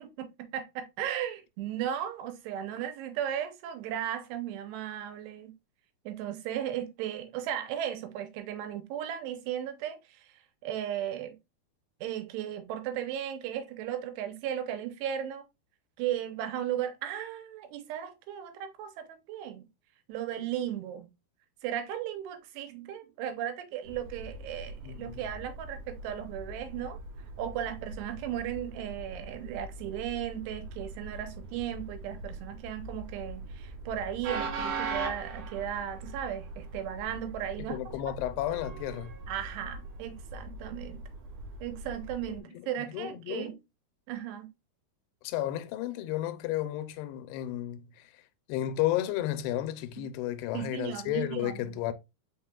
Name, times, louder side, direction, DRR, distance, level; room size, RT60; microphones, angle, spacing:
voice 1, 0.0-5.6 6.1-10.3 10.6-11.4 12.0-15.4 16.0-19.7 20.1-21.1 21.6-27.0 27.4-38.1 39.3-41.0 41.6-43.6 44.1-44.5 50.0-50.1 50.5-51.8, right 10 dB, 90° right, 2.9 m, -36 dB
Train, 23.8-42.4, right 3 dB, 70° right, 2.0 m, -41 dB
voice 2, 24.8-25.2 37.6-39.2 42.3-43.6 45.2-48.1 48.5-51.9, left 13 dB, 90° left, 2.6 m, -33 dB
5.5 x 4.3 x 2.2 m
omnidirectional pair, 4.6 m